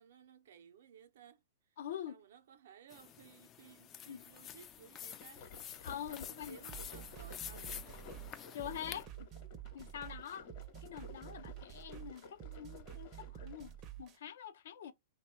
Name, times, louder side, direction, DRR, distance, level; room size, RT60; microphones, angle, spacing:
voice 1, 0.0-1.7 2.1-5.4 5.7-8.2, right 8 dB, 70° right, 0.5 m, -59 dB
voice 2, 1.8-2.1 4.1-4.2 5.8-6.6 8.5-9.3 9.7-10.5 10.8-13.7 14.0-14.9, left 10 dB, 70° left, 0.7 m, -45 dB
sound 1, 2.9-9.0, left 9 dB, 25° left, 0.3 m, -49 dB
sound 2, 4.8-13.8, left 4 dB, 45° left, 1.0 m, -55 dB
sound 3, 6.7-14.2, right 12 dB, 25° right, 0.6 m, -50 dB
3.0 x 2.3 x 4.2 m
hypercardioid pair, 150°, 0 cm